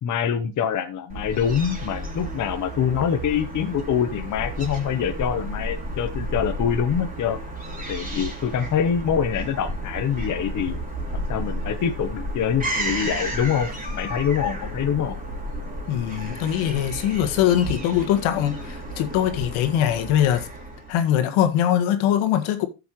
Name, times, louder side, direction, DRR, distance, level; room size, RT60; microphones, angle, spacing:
voice 1, 0.0-7.4 7.9-10.8 11.1-15.2, left 8 dB, 35° left, 1.1 m, -25 dB
Fowl / Gull seagull, 1.1-21.0, right 1 dB, 15° right, 3.3 m, -32 dB
voice 2, 15.9-20.5 20.9-22.7, left 11 dB, 70° left, 1.9 m, -22 dB
14.0 x 7.1 x 3.1 m
cardioid pair, 125°, 49 cm